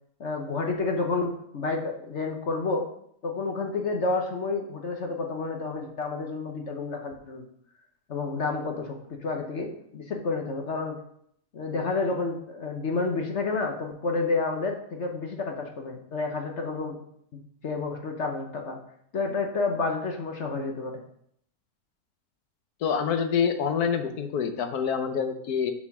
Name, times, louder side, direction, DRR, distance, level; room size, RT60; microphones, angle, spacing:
voice 1, 0.2-2.9 3.2-7.4 8.1-11.0 11.5-17.0 17.6-18.8 19.1-21.0, left 3 dB, 50° left, 2 dB, 1.1 m, -30 dB
voice 2, 22.8-25.7, left 7 dB, 75° left, 7 dB, 1.4 m, -26 dB
7.3 x 4.4 x 5.9 m, 0.68 s
omnidirectional pair, 1.6 m